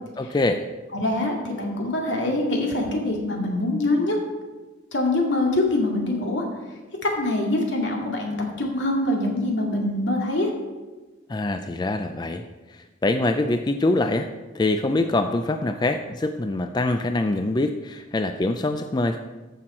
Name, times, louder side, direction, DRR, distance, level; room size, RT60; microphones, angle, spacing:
voice 1, 0.2-0.7 11.3-14.3 14.5-19.2, left 2 dB, 25° left, 7 dB, 0.4 m, -24 dB
voice 2, 0.9-4.2 4.9-6.4 7.0-10.5, left 2 dB, 75° left, 0 dB, 2.2 m, -24 dB
13.5 x 6.0 x 4.4 m, 1.2 s
head